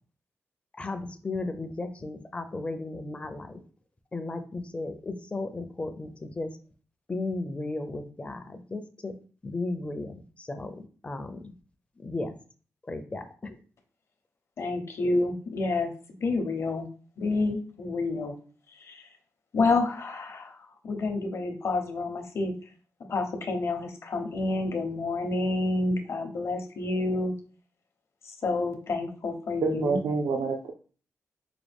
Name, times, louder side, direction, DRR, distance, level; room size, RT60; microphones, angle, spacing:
voice 1, 0.8-3.6 4.1-6.5 7.1-9.1 9.4-11.5 12.0-12.3 12.9-13.6, left 2 dB, 20° left, 7 dB, 0.5 m, -35 dB
voice 2, 14.6-15.9 16.2-16.9 17.2-18.3 18.8-19.0 19.5-20.6 20.8-22.5 23.1-27.3 28.4-30.0, left 3 dB, 50° left, 5 dB, 0.8 m, -28 dB
voice 3, 29.6-30.7, right 4 dB, 75° right, 2 dB, 0.4 m, -27 dB
4.8 x 2.2 x 3.4 m, 0.40 s
wide cardioid pair, 130°, 6 cm